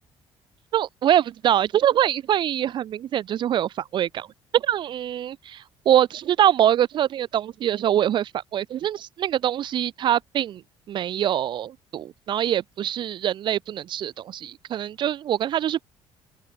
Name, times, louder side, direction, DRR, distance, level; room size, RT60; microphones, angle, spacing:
voice 1, 0.7-4.3 4.5-10.6 10.9-15.9, right 11 dB, 50° right, 0.6 m, -24 dB
open air
cardioid pair, 135°, 11 cm